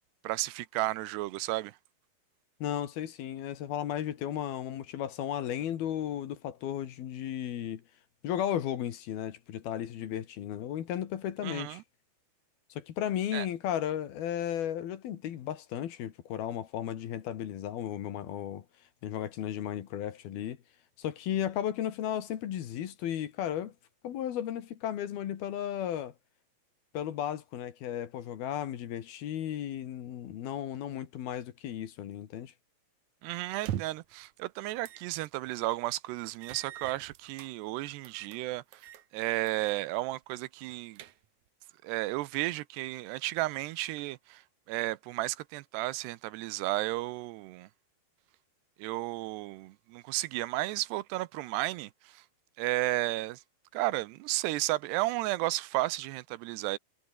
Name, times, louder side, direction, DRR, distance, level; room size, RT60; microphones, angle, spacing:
voice 1, 0.2-1.8 11.4-11.8 13.3-13.5 33.2-38.9 39.1-41.0 41.8-44.4 44.7-47.7 48.8-52.2 52.6-53.4 53.7-56.8, right 18 dB, 80° right, 2.8 m, -33 dB
voice 2, 2.6-7.8 8.2-11.8 12.7-18.6 19.0-20.6 21.0-23.7 24.0-26.1 26.9-32.5, left 10 dB, 65° left, 3.5 m, -34 dB
sound 1, 33.5-34.1 34.8-35.1 35.5-35.6 36.4-37.5 38.0-38.4 38.7-39.1 39.5-39.8 40.1-40.2 40.7-41.5, right 12 dB, 65° right, 1.9 m, -41 dB
omnidirectional pair, 4.9 m